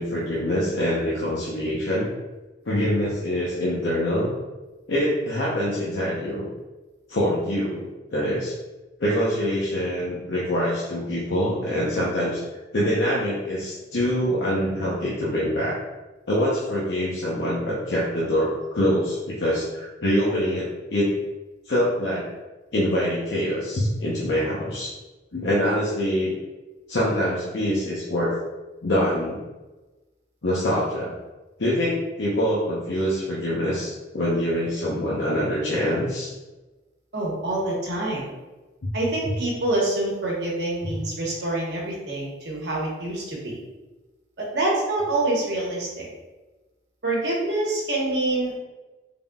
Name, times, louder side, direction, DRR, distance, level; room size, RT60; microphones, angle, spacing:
voice 1, 0.0-2.1 2.6-4.3 4.9-6.5 7.1-7.8 8.1-8.5 9.0-12.4 12.7-15.7 16.3-21.1 21.6-22.3 22.7-24.9 25.3-26.3 26.9-28.3 28.8-29.4 30.4-31.1 31.6-36.3, equal, 75° left, -7 dB, 0.8 m, -24 dB
voice 2, 37.1-38.2 38.9-43.6 44.4-46.1 47.0-48.6, right 2 dB, 65° right, -4 dB, 1.1 m, -26 dB
3.8 x 3.6 x 2.3 m, 1.2 s
head